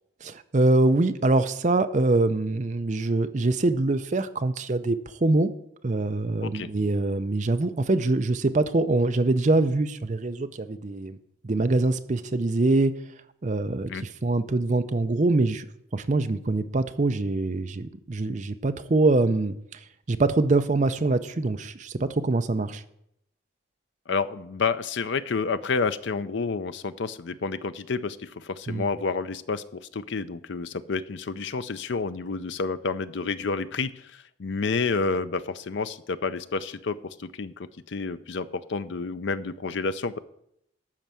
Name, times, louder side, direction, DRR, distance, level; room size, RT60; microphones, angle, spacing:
voice 1, 0.2-5.5 5.8-11.2 11.4-12.9 13.4-15.7 15.9-19.8 20.1-22.8 28.7-28.9, right 2 dB, 35° right, 10 dB, 0.5 m, -24 dB
voice 2, 24.1-40.2, left 4 dB, 65° left, 13 dB, 0.5 m, -29 dB
12.0 x 4.6 x 7.5 m, 0.76 s
head